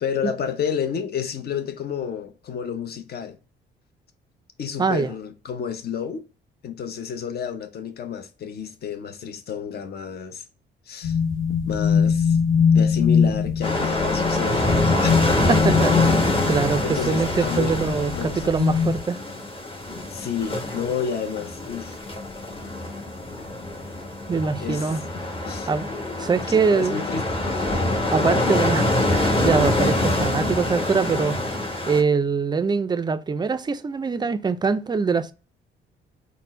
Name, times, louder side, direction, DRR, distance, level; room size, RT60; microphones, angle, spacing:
voice 1, 0.0-3.4 4.6-6.2 6.6-10.4 10.9-11.2 11.7-12.4 12.7-15.2 16.8-17.7 18.1-19.0 20.1-22.0 24.6-25.0 25.5-25.7 26.5-27.3, left 7 dB, 55° left, 0.7 m, -30 dB
voice 2, 4.8-5.1 15.5-19.2 24.3-25.0 25.7-25.9 26.2-27.0 28.1-31.4 31.9-35.3, right 5 dB, 20° right, 0.4 m, -23 dB
sound 1, 11.0-19.0, left 6 dB, 85° left, 1.0 m, -22 dB
sound 2, 13.6-32.0, left 1 dB, 25° left, 1.0 m, -25 dB
4.2 x 2.1 x 4.1 m
cardioid pair, 90°, 20 cm